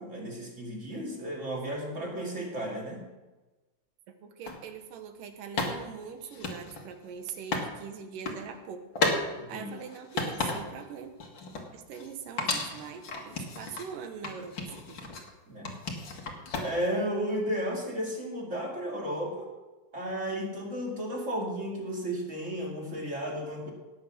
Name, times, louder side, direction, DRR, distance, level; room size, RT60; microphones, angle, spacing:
voice 1, 0.0-3.1 9.3-9.7 15.5-15.8 16.6-19.5 19.9-23.7, equal, 25° right, -1 dB, 2.1 m, -33 dB
voice 2, 4.1-11.1 11.7-15.1, right 7 dB, 75° right, 7 dB, 2.7 m, -42 dB
sound 1, 4.4-4.6 5.6-7.7 8.0-8.4 8.9-9.2 9.6-10.9 11.2-12.1 12.4-13.9 14.2-15.3 15.6-16.9, left 3 dB, 40° left, 1.9 m, -33 dB
18.5 x 7.7 x 6.2 m, 1.2 s
omnidirectional pair, 4.0 m